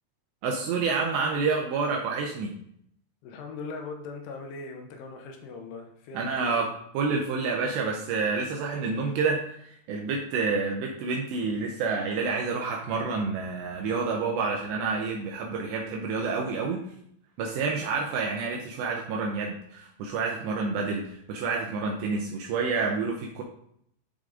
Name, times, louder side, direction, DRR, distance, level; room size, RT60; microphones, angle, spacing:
voice 1, 0.4-2.5 6.1-6.7 6.9-16.8 17.4-23.4, right 4 dB, 75° right, 0 dB, 2.7 m, -28 dB
voice 2, 3.2-6.5, left 4 dB, 80° left, 3 dB, 3.4 m, -40 dB
10.5 x 4.8 x 3.8 m, 0.69 s
omnidirectional pair, 5.7 m